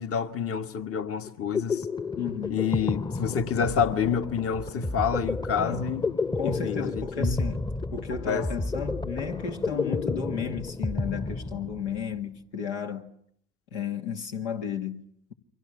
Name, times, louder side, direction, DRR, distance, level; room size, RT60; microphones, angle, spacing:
voice 1, 0.0-1.9 2.5-6.1 6.4-7.4 8.3-8.5, left 7 dB, 40° left, 1.4 m, -28 dB
sound 1, 1.2-12.0, left 3 dB, 15° left, 0.9 m, -31 dB
voice 2, 2.2-2.6 5.6-5.8 6.4-7.6 7.9-13.1 13.7-15.3, left 7 dB, 85° left, 2.1 m, -33 dB
29.5 x 24.0 x 6.5 m
hypercardioid pair, 70°, 34 cm